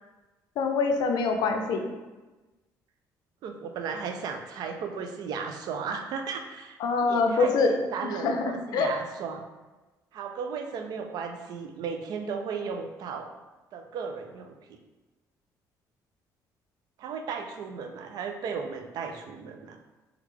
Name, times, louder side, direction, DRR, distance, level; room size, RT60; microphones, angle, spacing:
voice 1, 0.6-1.8 6.8-7.7 8.0-8.9, left 4 dB, 75° left, 5 dB, 0.4 m, -25 dB
voice 2, 3.4-9.4 10.1-13.3 13.7-14.8 17.0-19.8, right 5 dB, 70° right, 5 dB, 0.4 m, -35 dB
3.2 x 2.3 x 3.4 m, 1.2 s
cardioid pair, 135°, 7 cm